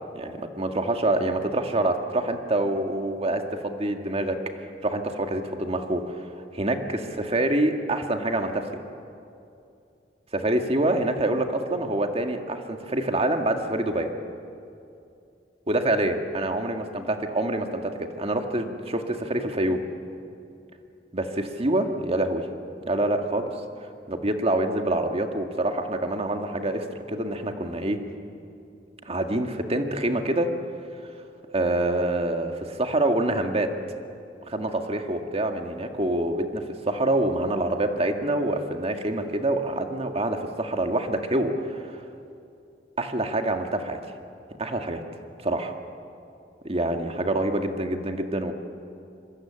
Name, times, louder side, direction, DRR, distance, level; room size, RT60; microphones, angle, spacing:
voice 1, 0.1-6.0 6.5-8.7 10.3-14.1 15.7-19.8 21.1-22.5 22.9-23.6 24.1-28.0 29.1-30.5 31.5-33.7 34.5-42.0 43.0-44.0 44.6-45.0 45.4-45.7 46.6-48.5, right 1 dB, 35° right, 5 dB, 2.0 m, -26 dB
26.5 x 23.5 x 8.9 m, 2.6 s
head